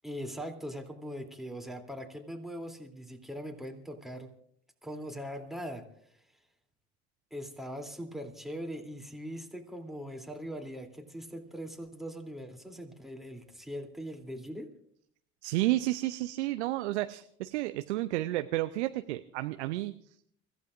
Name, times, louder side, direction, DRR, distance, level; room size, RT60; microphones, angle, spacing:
voice 1, 0.0-4.3 4.8-6.2 7.3-14.7, equal, ahead, 2 dB, 2.9 m, -41 dB
voice 2, 15.4-19.9, right 17 dB, 75° right, 10 dB, 0.7 m, -31 dB
29.5 x 15.0 x 2.5 m, 0.67 s
hypercardioid pair, 65°, 35 cm